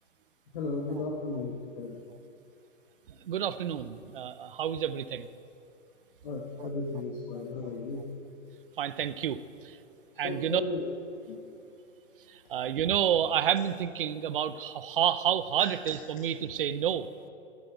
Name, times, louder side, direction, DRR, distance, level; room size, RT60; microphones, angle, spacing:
voice 1, 0.5-1.9 6.2-8.0 10.2-10.9 11.3-11.4, left 3 dB, 40° left, 1 dB, 1.5 m, -35 dB
voice 2, 3.1-5.3 6.6-6.7 7.6-7.7 8.8-9.8 10.2-10.6 12.3-17.1, right 9 dB, 45° right, 14 dB, 0.6 m, -30 dB
11.5 x 11.5 x 9.2 m, 2.7 s
hypercardioid pair, 170°, 37 cm